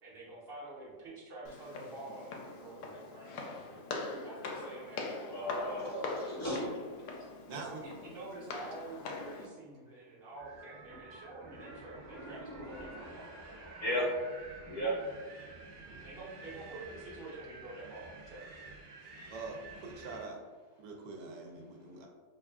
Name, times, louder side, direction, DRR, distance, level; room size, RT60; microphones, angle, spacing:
voice 1, 0.0-4.0 4.2-5.0 7.5-13.3 15.8-18.6, right 2 dB, 45° right, -7 dB, 1.0 m, -48 dB
Walk footsteps, 1.5-9.5, left 3 dB, 75° left, 1.1 m, -42 dB
voice 2, 5.3-7.1 11.6-11.7 12.1-14.1 14.6-14.9, equal, 45° left, -6 dB, 0.9 m, -37 dB
voice 3, 7.5-7.8 19.3-20.4 20.8-22.1, right 3 dB, 85° right, 1 dB, 1.2 m, -44 dB
Wind, 10.4-20.3, right 3 dB, 65° right, 0.6 m, -51 dB
5.6 x 2.4 x 2.3 m, 1.4 s
omnidirectional pair, 1.8 m